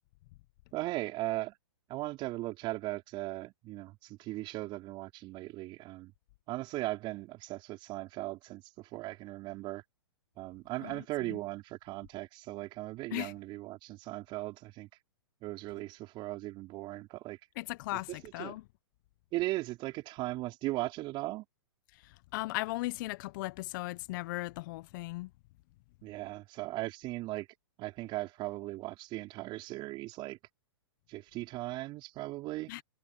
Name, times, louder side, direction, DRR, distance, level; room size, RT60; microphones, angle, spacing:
voice 1, 0.7-1.5 1.9-6.1 6.5-9.8 10.4-14.9 15.4-17.4 18.2-18.5 19.3-21.4 26.0-27.5 27.8-30.4 31.1-32.7, right 18 dB, 35° right, 4.9 m, -38 dB
voice 2, 10.8-11.4 13.1-13.3 17.6-18.6 21.9-25.3 32.7-32.8, left 20 dB, 45° left, 1.0 m, -37 dB
hypercardioid pair, 120°, 14 cm